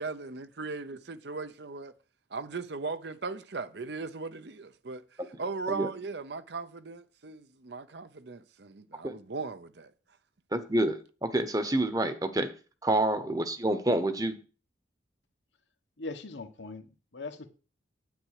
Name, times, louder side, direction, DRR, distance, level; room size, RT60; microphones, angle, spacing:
voice 1, 0.0-1.9 2.3-5.0 5.4-9.9, right 4 dB, 65° right, 0.7 m, -38 dB
voice 2, 10.5-12.5 12.8-14.4, right 1 dB, 20° right, 0.9 m, -28 dB
voice 3, 16.0-17.5, left 3 dB, 80° left, 1.3 m, -40 dB
9.4 x 8.7 x 4.9 m
head